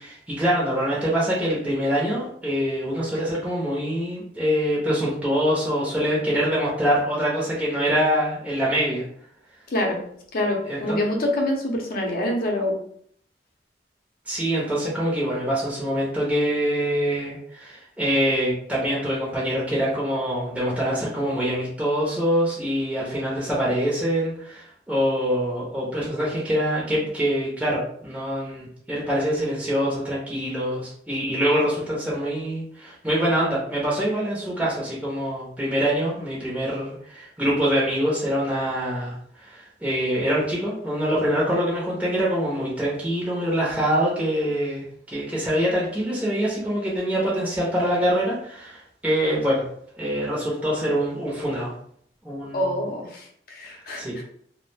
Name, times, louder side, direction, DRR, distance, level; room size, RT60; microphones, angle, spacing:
voice 1, 0.0-9.0 10.7-11.0 14.3-49.6 50.0-51.7 52.2-52.6 54.0-54.1, equal, 5° right, -6 dB, 0.5 m, -24 dB
voice 2, 9.7-10.0 10.3-12.8 52.5-54.2, left 1 dB, 55° left, 0 dB, 0.6 m, -26 dB
2.2 x 2.0 x 3.2 m, 0.64 s
head